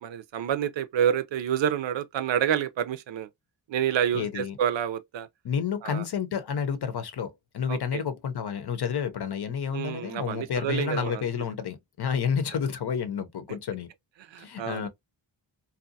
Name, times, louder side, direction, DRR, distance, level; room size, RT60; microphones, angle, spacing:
voice 1, 0.0-3.3 3.7-5.3 5.8-6.0 7.7-8.0 9.7-11.2 14.3-14.9, right 9 dB, 70° right, 0.5 m, -28 dB
voice 2, 4.1-4.6 5.4-13.9 14.4-14.9, left 7 dB, 60° left, 0.7 m, -30 dB
2.6 x 2.3 x 2.6 m
cardioid pair, 65°, 46 cm